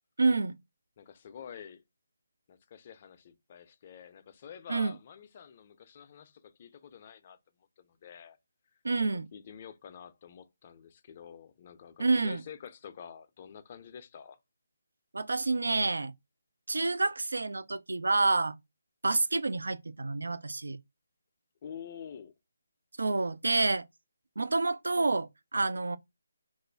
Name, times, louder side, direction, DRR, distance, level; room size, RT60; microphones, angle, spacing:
voice 1, 0.2-0.6 4.7-5.0 8.8-9.3 12.0-12.4 15.1-16.1 16.7-18.6 19.0-20.8 23.0-23.8 24.4-26.0, right 3 dB, 85° right, 0.3 m, -28 dB
voice 2, 1.0-1.8 2.5-7.4 7.8-8.4 9.0-14.4 21.6-22.3, left 8 dB, 35° left, 0.4 m, -48 dB
2.4 x 2.1 x 3.3 m
figure-of-eight pair, 160°, 0 cm